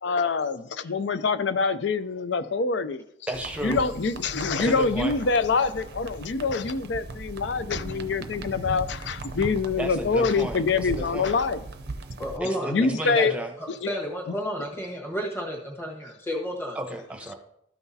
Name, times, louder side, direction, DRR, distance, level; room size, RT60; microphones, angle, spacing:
voice 1, 0.0-3.0 3.6-11.6 12.7-13.3 13.8-13.9, left 4 dB, 65° left, 13 dB, 0.5 m, -25 dB
voice 2, 3.3-3.8 4.6-5.2 9.8-11.4 12.4-13.5 16.7-17.3, right 1 dB, 5° right, 4 dB, 0.8 m, -33 dB
sound 1, 3.3-12.4, right 2 dB, 55° right, 0.6 m, -38 dB
voice 3, 12.2-13.4 13.8-16.8, equal, 10° left, -1 dB, 1.4 m, -32 dB
13.5 x 5.9 x 2.7 m, 0.74 s
head